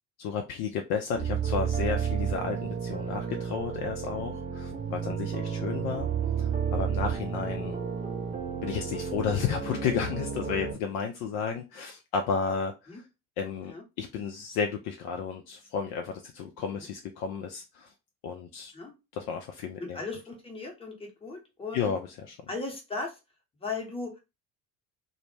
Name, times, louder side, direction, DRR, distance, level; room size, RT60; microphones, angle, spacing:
voice 1, 0.2-6.1 6.4-7.8 8.6-13.0 13.4-17.9 18.2-18.7 19.1-20.0 21.7-22.4, left 6 dB, 50° left, 0.5 m, -32 dB
sound 1, 1.1-10.7, right 7 dB, 20° right, 0.4 m, -32 dB
voice 2, 19.8-21.9 22.5-23.2 23.6-24.2, left 3 dB, 10° left, 0.8 m, -37 dB
2.1 x 2.0 x 3.1 m
hypercardioid pair, 60°, 50 cm